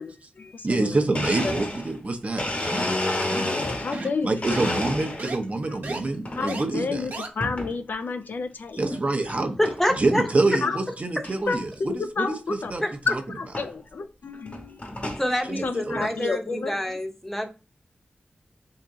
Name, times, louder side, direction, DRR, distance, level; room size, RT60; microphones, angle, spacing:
voice 1, 0.0-1.1 1.4-1.6 3.4-4.7 5.7-5.8 6.3-9.0 10.6-10.8 11.5-12.7 13.3-14.8 15.6-16.7, left 4 dB, 75° left, 9 dB, 0.4 m, -31 dB
voice 2, 0.6-2.5 4.2-7.1 8.8-9.6 9.9-12.8 15.5-16.0, right 2 dB, 45° right, 5 dB, 0.7 m, -26 dB
Domestic sounds home sounds, 1.1-4.1 4.4-5.4 5.9-6.4 7.4-7.7 8.3-8.4 9.3-9.4 9.6-10.0 10.4-10.5 10.7-10.8 11.2-11.3 12.7-12.8 13.5-13.7 14.3-15.3, left 1 dB, 50° left, 1.2 m, -30 dB
sound 1, 2.6-3.0 3.3-3.6 3.9-4.2 4.6-4.7 5.2-5.4 5.8-6.0 6.5-6.6 7.1-7.3, right 2 dB, 75° right, 1.0 m, -34 dB
voice 3, 9.6-10.2 12.8-12.9 15.2-17.5, equal, 10° left, 5 dB, 0.8 m, -26 dB
3.8 x 2.8 x 3.6 m, 0.33 s
wide cardioid pair, 65°, 3 cm